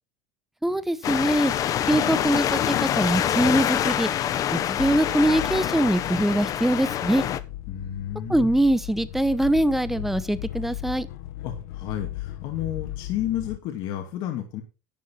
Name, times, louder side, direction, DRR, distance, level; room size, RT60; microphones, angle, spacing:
voice 1, 0.6-1.5 1.9-4.1 4.5-7.2 8.3-11.1, right 1 dB, 5° right, 15 dB, 0.9 m, -23 dB
sound 1, 1.0-7.4, left 10 dB, 40° left, 0.9 m, -26 dB
sound 2, 4.8-13.6, left 14 dB, 85° left, 1.0 m, -37 dB
voice 2, 7.7-8.6 11.4-14.6, left 11 dB, 60° left, 3 dB, 2.4 m, -31 dB
11.0 x 8.3 x 4.3 m, 0.31 s
supercardioid pair, 125°, 9 cm